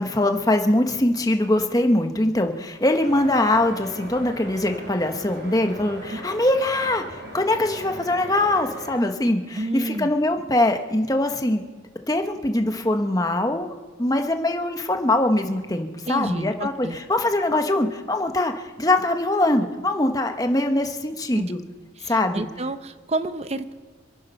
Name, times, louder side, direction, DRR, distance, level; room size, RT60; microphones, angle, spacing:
voice 1, 0.0-11.6 12.1-13.7 14.0-21.6 22.1-22.5, left 1 dB, 20° left, 5 dB, 1.0 m, -22 dB
sound 1, 3.0-9.0, right 1 dB, 65° right, 4.2 m, -39 dB
voice 2, 9.6-10.1 16.1-17.0 21.3-21.4 22.0-23.7, right 2 dB, 30° right, 11 dB, 0.7 m, -29 dB
27.0 x 9.5 x 5.6 m, 1.4 s
head